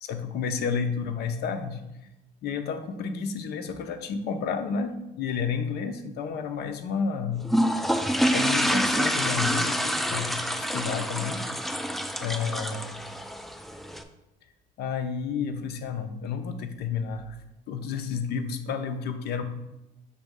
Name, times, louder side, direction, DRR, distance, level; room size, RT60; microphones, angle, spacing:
voice 1, 0.0-1.8 2.4-7.4 8.3-10.4 10.7-11.4 12.2-13.0 14.8-17.4 17.7-19.4, left 6 dB, 70° left, 7 dB, 0.8 m, -31 dB
sound 1, 7.4-14.0, equal, ahead, 0.4 m, -27 dB
6.9 x 3.1 x 5.2 m, 0.92 s
cardioid pair, 110°, 17 cm